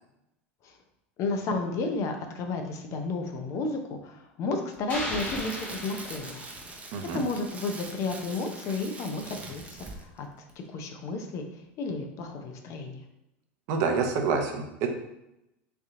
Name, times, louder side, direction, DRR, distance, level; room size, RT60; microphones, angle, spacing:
voice 1, 1.2-6.5 7.1-10.3 10.6-11.4 11.8-13.0, left 3 dB, 50° left, 5 dB, 0.6 m, -32 dB
Crackle, 4.7-10.2 10.5-10.7, right 2 dB, 20° right, 0.7 m, -43 dB
sound 1, 4.9-7.1, left 1 dB, 30° left, 1.3 m, -37 dB
voice 2, 6.9-7.2 13.7-14.9, right 5 dB, 60° right, 3 dB, 0.8 m, -27 dB
3.3 x 2.7 x 3.7 m, 0.89 s
hypercardioid pair, 95°, 7 cm